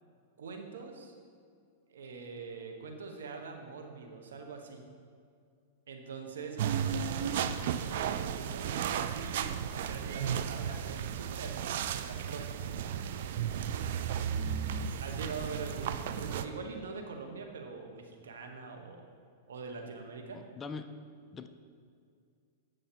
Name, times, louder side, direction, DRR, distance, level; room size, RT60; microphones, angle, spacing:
voice 1, 0.4-1.1 1.9-4.8 5.9-8.0 8.3-9.6 9.9-12.7 15.0-19.0 19.5-20.4, right 4 dB, 90° right, 3 dB, 1.2 m, -43 dB
sound 1, 6.6-16.5, right 8 dB, 65° right, 0.4 m, -34 dB
voice 2, 14.3-15.0 16.1-16.3 20.3-20.9 21.3-21.5, left 4 dB, 20° left, 9 dB, 0.4 m, -43 dB
8.8 x 6.5 x 4.5 m, 2.3 s
hypercardioid pair, 135°, 0 cm